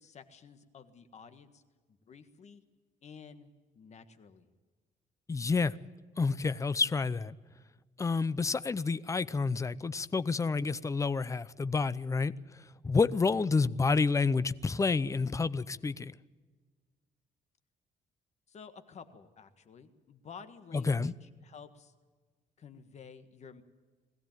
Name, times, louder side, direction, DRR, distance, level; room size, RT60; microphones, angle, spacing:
voice 1, 0.0-1.6 2.1-2.6 3.0-3.5 3.7-4.5 18.5-21.9 22.6-23.6, left 6 dB, 45° left, 1.6 m, -51 dB
voice 2, 5.3-5.7 6.2-7.4 8.0-12.3 12.8-16.1 20.7-21.1, left 4 dB, 20° left, 0.6 m, -29 dB
21.5 x 15.5 x 9.1 m
cardioid pair, 130°, 16 cm